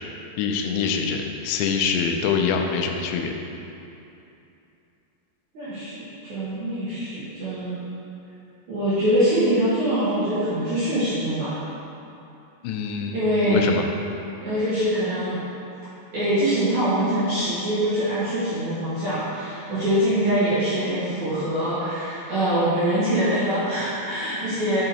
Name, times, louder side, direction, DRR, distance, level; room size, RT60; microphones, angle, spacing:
voice 1, 0.4-3.3 12.6-13.2 13.5-13.8, left 6 dB, 85° left, 3 dB, 2.8 m, -24 dB
voice 2, 5.5-7.8 8.7-11.6 13.1-13.7 14.4-15.4 16.1-24.8, right 1 dB, 65° right, -13 dB, 1.9 m, -24 dB
5.9 x 5.6 x 4.0 m, 2.8 s
omnidirectional pair, 5.0 m